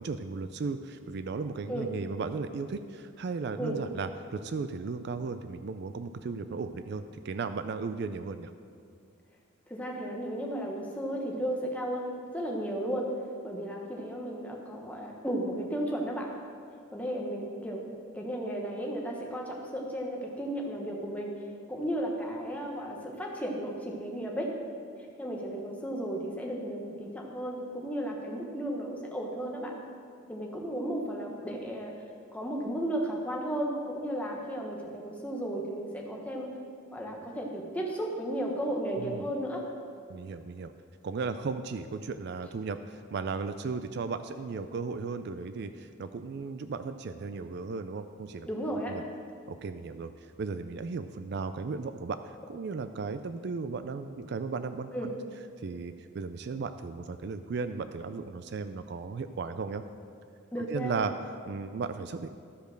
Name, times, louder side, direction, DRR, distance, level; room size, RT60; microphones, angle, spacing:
voice 1, 0.0-8.5 39.0-39.3 40.1-40.7 41.0-48.5 48.9-49.0 49.5-50.1 50.4-55.1 55.6-59.8 60.7-61.1 61.5-62.4, right 4 dB, 55° right, 10 dB, 0.3 m, -35 dB
voice 2, 9.7-13.1 13.4-16.3 16.9-21.3 21.7-24.5 25.2-29.7 30.3-31.9 32.3-36.5 36.9-39.7 48.5-49.0 54.9-55.1 60.5-61.0, right 1 dB, 5° left, -1 dB, 1.2 m, -34 dB
12.5 x 5.1 x 6.5 m, 2.3 s
head